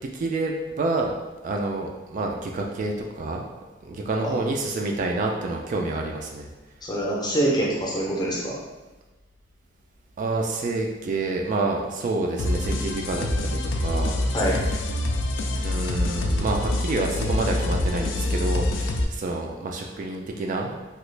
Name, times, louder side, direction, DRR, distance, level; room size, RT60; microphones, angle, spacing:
voice 1, 0.0-1.2 1.4-3.4 3.8-6.5 10.2-14.2 15.6-20.7, right 2 dB, 45° right, 1 dB, 0.3 m, -28 dB
voice 2, 6.8-8.6 14.3-14.6, right 1 dB, 20° left, -3 dB, 0.6 m, -25 dB
sound 1, 12.4-19.0, left 1 dB, 75° left, 0.3 m, -26 dB
2.9 x 2.3 x 3.2 m, 1.1 s
head